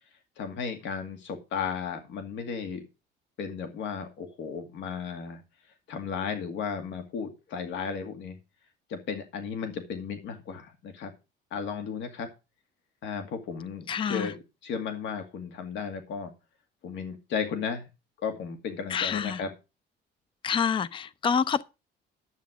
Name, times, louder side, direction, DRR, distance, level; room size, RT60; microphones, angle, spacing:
voice 1, 0.4-2.8 3.4-5.4 5.9-8.4 8.9-11.1 11.5-12.3 13.0-14.3 14.6-16.3 16.8-17.9 18.2-19.5, left 6 dB, 70° left, 2.2 m, -34 dB
voice 2, 13.9-14.3 18.9-19.4 20.4-21.6, left 7 dB, 25° left, 0.5 m, -27 dB
11.5 x 8.2 x 5.0 m
cardioid pair, 165°, 19 cm